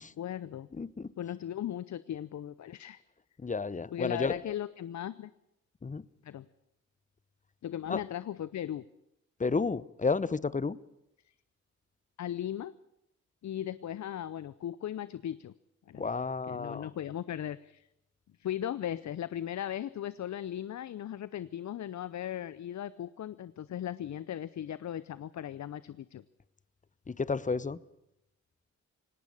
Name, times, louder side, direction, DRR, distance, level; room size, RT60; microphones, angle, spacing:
voice 1, 0.0-0.7 1.2-3.0 3.9-5.3 6.2-6.5 7.6-8.8 12.2-12.8 13.4-15.5 15.9-16.1 16.5-17.9 18.4-26.2, left 11 dB, 60° left, 17 dB, 0.7 m, -37 dB
voice 2, 0.7-1.1 3.4-4.4 5.8-6.0 7.9-8.0 9.4-10.8 16.0-16.9 27.1-27.8, left 4 dB, 25° left, 19 dB, 0.8 m, -31 dB
18.0 x 18.0 x 8.7 m, 0.84 s
cardioid pair, 60°, 32 cm